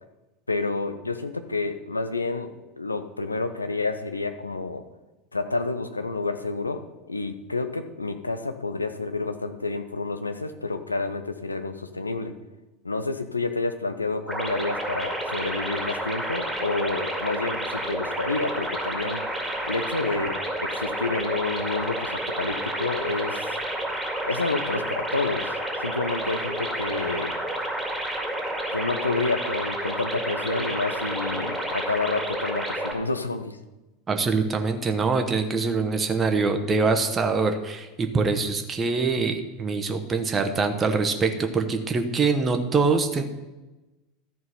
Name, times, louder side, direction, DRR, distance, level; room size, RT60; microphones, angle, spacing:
voice 1, 0.5-2.5 2.8-4.8 5.3-12.3 12.8-19.2 19.6-23.6 24.2-27.3 28.7-33.6, left 3 dB, 85° left, 9 dB, 0.7 m, -29 dB
sound 1, 14.3-32.9, right 1 dB, ahead, 2.1 m, -30 dB
voice 2, 34.1-43.2, right 4 dB, 25° right, 6 dB, 1.1 m, -24 dB
13.5 x 4.6 x 5.7 m, 1.1 s
figure-of-eight pair, 80°, 0 cm